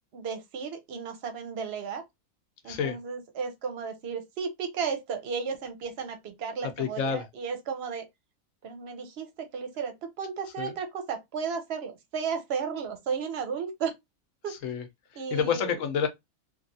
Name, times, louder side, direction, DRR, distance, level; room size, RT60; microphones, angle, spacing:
voice 1, 0.1-2.0 2.6-8.1 8.6-13.9 14.4-14.6 15.2-15.8, right 6 dB, 55° right, 0.8 m, -34 dB
voice 2, 2.7-3.0 6.6-7.3 10.6-10.8 14.5-14.9 15.1-16.1, left 7 dB, 65° left, 1.0 m, -29 dB
3.1 x 2.4 x 2.6 m
omnidirectional pair, 1.5 m